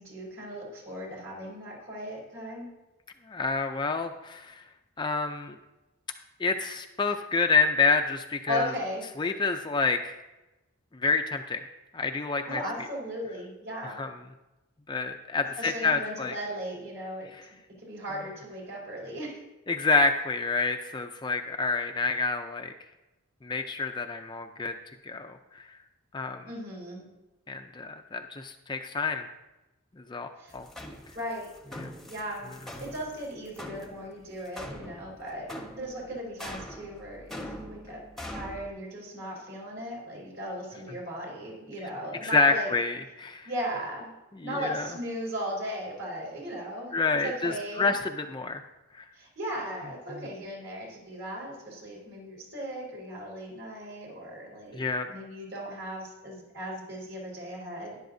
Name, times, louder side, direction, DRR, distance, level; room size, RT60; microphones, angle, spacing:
voice 1, 0.0-2.7 8.5-9.0 12.4-14.0 15.6-17.3 17.8-19.4 26.4-27.0 30.4-30.5 31.1-31.5 32.0-32.5 32.8-38.0 38.3-42.7 43.4-44.1 44.4-46.9 47.2-47.9 49.1-58.0, equal, 55° right, -3 dB, 4.2 m, -37 dB
voice 2, 3.3-4.6 5.0-5.6 6.4-8.7 9.2-10.2 10.9-11.6 11.9-12.6 13.8-14.1 14.9-16.4 17.3-17.4 19.7-22.7 23.4-24.7 25.0-25.7 26.1-26.4 27.5-29.3 30.0-30.7 31.8-31.9 42.2-43.5 44.3-44.9 46.9-48.6 48.9-49.0 54.7-55.1, left 4 dB, 20° left, 5 dB, 0.4 m, -28 dB
sound 1, 30.5-38.7, equal, ahead, 0.9 m, -43 dB
12.5 x 11.0 x 2.7 m, 1.0 s
head